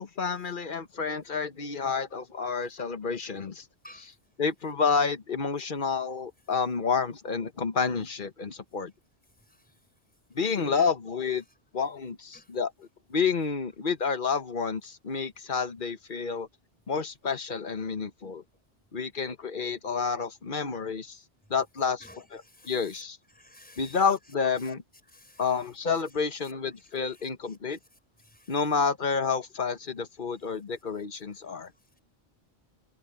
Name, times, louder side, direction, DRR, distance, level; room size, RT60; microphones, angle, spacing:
voice 1, 0.0-3.6 3.9-4.1 4.4-8.9 10.3-11.4 11.7-12.7 13.1-16.5 16.9-18.4 18.9-21.2 21.5-23.2 23.8-24.8 25.4-27.8 28.5-31.7, left 5 dB, 45° left, 1.2 m, -29 dB
voice 2, 23.4-24.0 24.6-24.7 25.1-25.4 27.1-27.3 28.2-28.5 31.5-31.6, left 1 dB, 5° left, 5.2 m, -53 dB
omnidirectional pair, 1.2 m